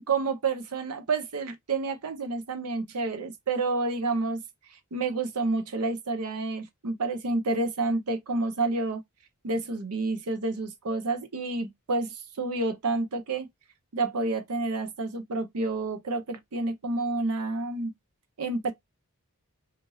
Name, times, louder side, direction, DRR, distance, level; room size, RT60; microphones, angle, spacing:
voice 1, 0.1-4.4 4.9-9.0 9.4-13.5 13.9-17.9 18.4-18.7, right 3 dB, 85° right, 0.7 m, -29 dB
3.0 x 2.5 x 2.7 m
head